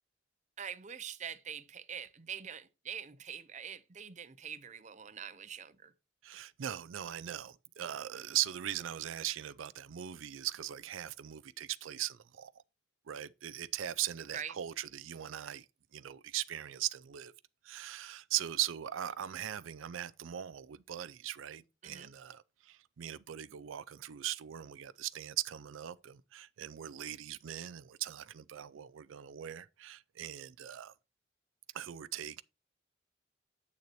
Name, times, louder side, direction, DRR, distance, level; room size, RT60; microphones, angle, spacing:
voice 1, 0.6-5.9 14.3-14.5 21.8-22.1, right 8 dB, 35° right, 0.6 m, -44 dB
voice 2, 6.2-12.5 13.1-15.7 15.9-17.3 17.6-30.9 31.7-32.4, right 12 dB, 85° right, 0.4 m, -39 dB
8.4 x 6.6 x 3.0 m
head